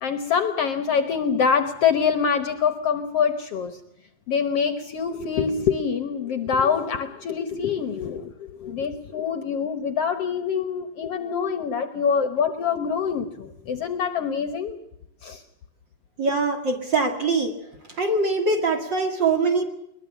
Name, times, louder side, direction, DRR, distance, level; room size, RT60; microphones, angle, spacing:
voice 1, 0.0-3.8 4.3-14.8 15.2-15.4, left 6 dB, 60° left, 9 dB, 1.7 m, -25 dB
voice 2, 16.2-17.6 17.9-19.6, right 3 dB, 40° right, 5 dB, 2.2 m, -23 dB
22.0 x 21.0 x 7.2 m, 0.81 s
omnidirectional pair, 3.7 m